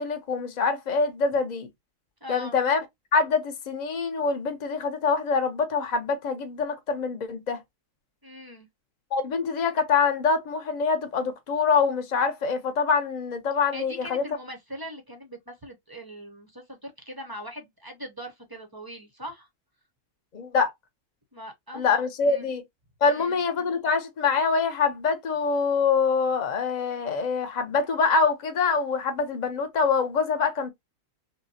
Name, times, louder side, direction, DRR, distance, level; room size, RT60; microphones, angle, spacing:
voice 1, 0.0-1.7 2.3-2.8 3.1-7.6 9.1-14.2 20.3-20.7 21.7-22.6 23.0-30.7, left 5 dB, 40° left, 0.7 m, -25 dB
voice 2, 2.2-2.6 8.2-8.7 13.7-19.5 21.3-21.9 22.2-22.5 23.0-23.4, equal, 25° right, 0.5 m, -41 dB
5.6 x 2.2 x 2.7 m
omnidirectional pair, 1.6 m